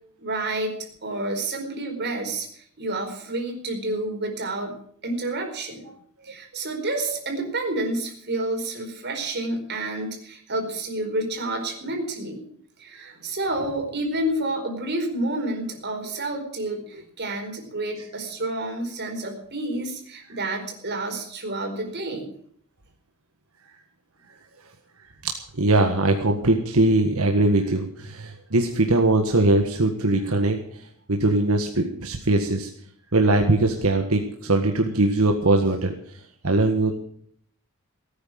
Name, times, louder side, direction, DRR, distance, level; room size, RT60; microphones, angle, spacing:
voice 1, 0.2-4.7 5.0-5.8 6.2-12.4 12.8-22.3, right 2 dB, 55° right, 3 dB, 4.5 m, -29 dB
voice 2, 25.2-30.6 31.1-32.7 33.1-35.9 36.4-37.0, right 2 dB, 85° right, 3 dB, 1.6 m, -21 dB
17.0 x 9.5 x 7.5 m, 0.63 s
head